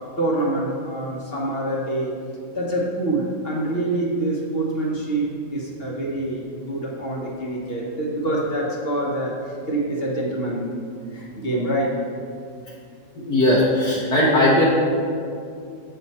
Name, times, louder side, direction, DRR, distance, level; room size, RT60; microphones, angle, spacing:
voice 1, 0.0-2.1 2.5-9.4 9.7-10.8 11.1-12.0, right 1 dB, 40° left, -3 dB, 1.2 m, -26 dB
voice 2, 13.2-14.6, left 1 dB, 65° left, -6 dB, 1.5 m, -18 dB
8.0 x 5.9 x 4.2 m, 2.3 s
omnidirectional pair, 1.9 m